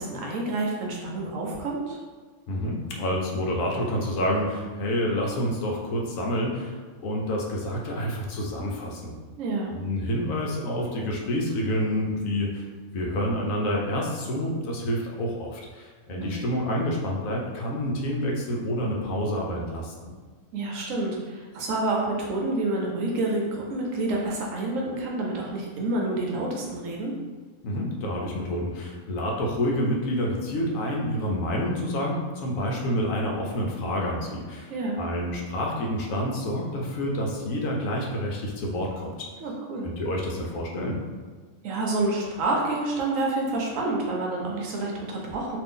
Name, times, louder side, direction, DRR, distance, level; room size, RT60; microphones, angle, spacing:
voice 1, 0.0-2.0 9.4-9.7 16.1-16.3 20.5-27.2 34.7-35.0 39.4-39.9 41.6-45.6, right 2 dB, 70° right, -1 dB, 0.9 m, -28 dB
voice 2, 2.5-9.1 9.7-12.7 12.9-20.1 27.6-34.7 35.0-39.3 39.8-41.0, equal, 70° left, -1 dB, 0.9 m, -28 dB
2.5 x 2.5 x 3.6 m, 1.4 s
omnidirectional pair, 1.5 m